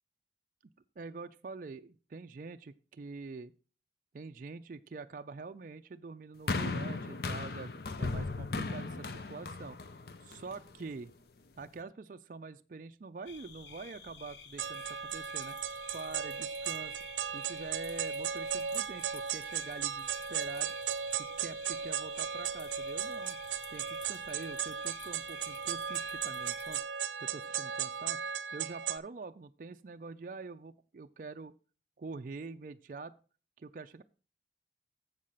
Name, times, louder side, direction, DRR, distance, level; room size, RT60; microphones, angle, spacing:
voice 1, 1.0-3.5 4.1-7.7 8.0-9.8 10.2-11.1 11.6-15.6 15.9-17.0 17.3-20.7 21.2-23.4 23.7-26.8 27.2-28.2 28.5-31.5 32.0-33.1 33.6-34.0, right 4 dB, 45° right, 8 dB, 0.4 m, -45 dB
sound 1, 6.5-10.8 11.6-11.7, left 3 dB, 55° left, 0.6 m, -36 dB
sound 2, 13.3-26.8, left 6 dB, 75° left, 1.0 m, -51 dB
sound 3, 14.6-29.0, right 8 dB, 90° right, 0.6 m, -36 dB
7.4 x 6.4 x 5.6 m, 0.37 s
head